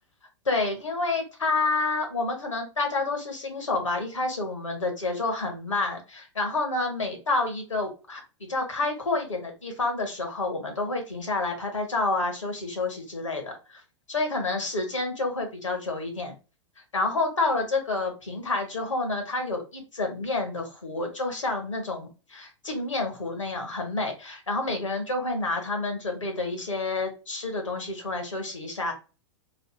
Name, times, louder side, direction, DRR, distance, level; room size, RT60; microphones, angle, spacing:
voice 1, 0.4-13.8 14.1-16.3 16.9-28.9, left 3 dB, 75° left, 4 dB, 1.3 m, -29 dB
3.2 x 2.7 x 2.7 m, 0.32 s
figure-of-eight pair, 100°, 16 cm